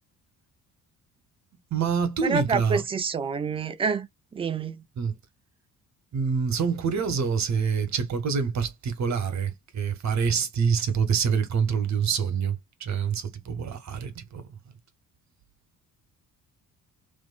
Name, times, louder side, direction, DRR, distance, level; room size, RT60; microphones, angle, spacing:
voice 1, 1.7-2.8 5.0-5.2 6.1-14.4, right 6 dB, 35° right, 1.0 m, -26 dB
voice 2, 2.2-4.1 4.3-4.8, right 5 dB, 15° right, 0.3 m, -27 dB
2.5 x 2.5 x 2.3 m
figure-of-eight pair, 45°, 46 cm